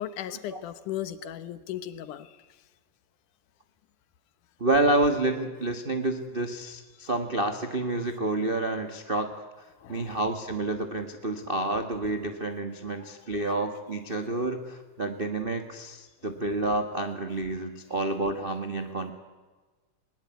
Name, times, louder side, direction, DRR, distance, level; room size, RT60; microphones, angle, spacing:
voice 1, 0.0-2.3 9.8-10.1, left 11 dB, 75° left, 13 dB, 2.5 m, -36 dB
voice 2, 4.6-9.5 9.9-19.1, right 2 dB, 45° right, 6 dB, 0.6 m, -29 dB
20.5 x 20.5 x 9.4 m, 1.3 s
omnidirectional pair, 3.7 m